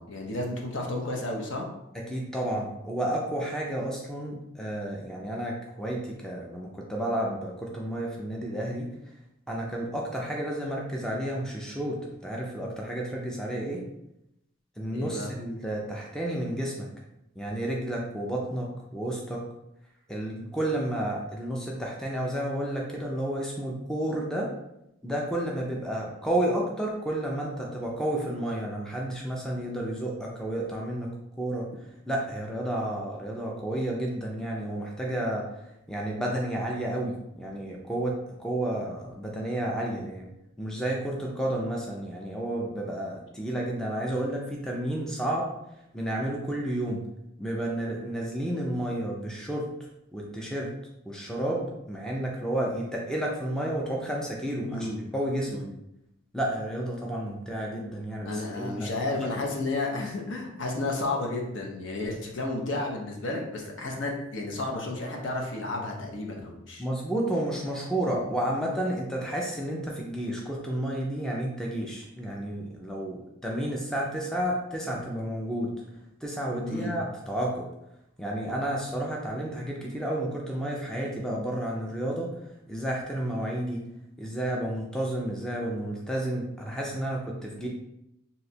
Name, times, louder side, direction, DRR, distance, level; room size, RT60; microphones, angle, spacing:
voice 1, 0.0-1.7 14.9-15.3 54.7-55.0 55.5-55.7 58.2-66.8 76.6-76.9, left 2 dB, 65° left, 0 dB, 0.7 m, -32 dB
voice 2, 2.1-8.9 9.5-13.8 14.8-16.9 17.4-19.4 20.1-24.5 25.0-31.1 31.4-31.7 32.1-35.5 35.9-40.3 40.6-45.5 45.9-47.0 47.4-49.7 50.1-50.7 51.1-55.7 56.3-58.9 59.2-59.3 66.8-75.7 76.2-77.7 78.2-82.3 82.7-83.9 84.2-87.7, right 1 dB, 5° left, -2 dB, 0.4 m, -31 dB
2.8 x 2.3 x 4.0 m, 0.84 s
head